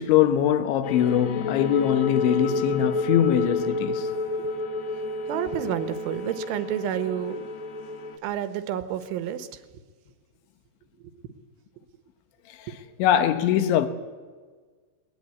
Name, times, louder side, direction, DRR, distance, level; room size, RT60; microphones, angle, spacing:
voice 1, 0.0-4.1 12.5-13.9, left 10 dB, 75° left, 3.5 m, -22 dB
sound 1, 0.8-8.2, left 2 dB, 60° left, 1.9 m, -30 dB
voice 2, 5.3-7.5 8.2-9.5, right 10 dB, 80° right, 3.6 m, -29 dB
20.5 x 19.0 x 9.6 m
omnidirectional pair, 5.5 m